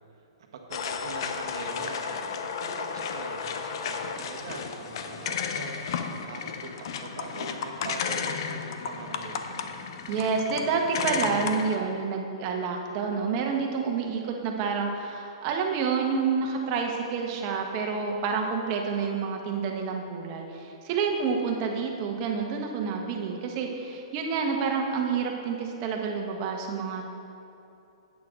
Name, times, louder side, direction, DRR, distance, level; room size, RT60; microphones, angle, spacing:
voice 1, 0.4-9.7, right 4 dB, 65° right, 3 dB, 1.3 m, -42 dB
sound 1, 0.7-11.8, left 6 dB, 60° left, 0.7 m, -33 dB
voice 2, 10.1-27.1, right 5 dB, 40° right, 2 dB, 1.3 m, -28 dB
10.5 x 8.6 x 3.8 m, 2.8 s
hypercardioid pair, 130°, 3 cm